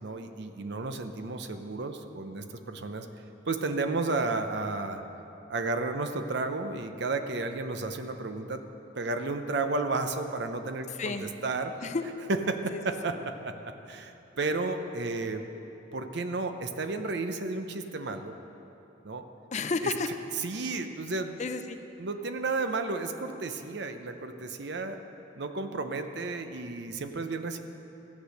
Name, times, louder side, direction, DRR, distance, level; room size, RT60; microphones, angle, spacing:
voice 1, 0.0-3.1 3.5-5.0 5.5-8.6 9.0-11.8 12.3-15.5 15.9-18.4 19.0-19.3 20.4-21.3 22.0-25.0 25.3-27.6, right 3 dB, 60° right, 8 dB, 0.7 m, -32 dB
voice 2, 11.0-11.3 11.8-12.0 12.7-13.1 19.5-20.2 21.4-21.8, left 4 dB, 40° left, 9 dB, 0.5 m, -32 dB
14.0 x 8.3 x 6.5 m, 2.9 s
head